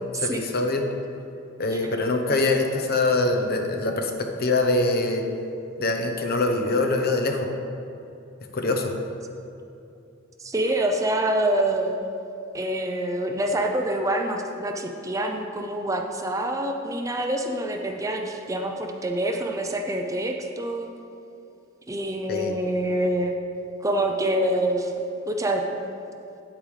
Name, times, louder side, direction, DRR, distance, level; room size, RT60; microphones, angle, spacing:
voice 1, 0.2-0.9 1.6-5.2 5.8-7.5 8.5-8.9 22.3-22.6, left 2 dB, 50° left, 4 dB, 0.7 m, -24 dB
voice 2, 10.4-12.0 12.5-20.9 21.9-23.3 23.8-25.6, right 1 dB, 15° right, 3 dB, 0.5 m, -26 dB
8.7 x 8.7 x 3.2 m, 2.7 s
head